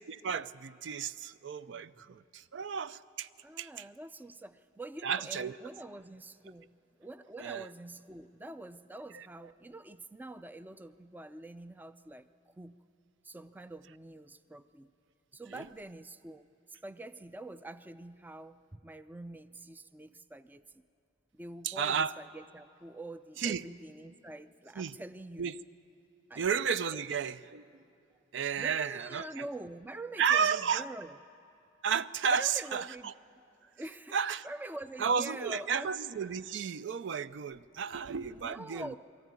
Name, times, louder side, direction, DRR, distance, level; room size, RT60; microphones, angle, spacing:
voice 1, 0.1-3.3 3.6-3.9 5.0-5.6 7.4-7.7 9.1-9.3 15.5-15.7 21.6-22.1 23.4-23.6 24.8-25.0 25.4-25.6 26.4-27.6 28.3-29.4 30.2-30.8 31.8-33.1 34.1-34.5 35.0-39.0, right 6 dB, 70° right, 15 dB, 0.5 m, -32 dB
voice 2, 3.4-12.8 13.2-14.9 15.3-20.6 21.3-25.5 26.3-26.4 26.9-27.0 28.6-31.2 32.3-33.1 33.8-34.2 34.4-35.9 38.3-39.0, right 2 dB, 10° right, 12 dB, 0.4 m, -45 dB
22.5 x 14.0 x 9.5 m, 2.8 s
head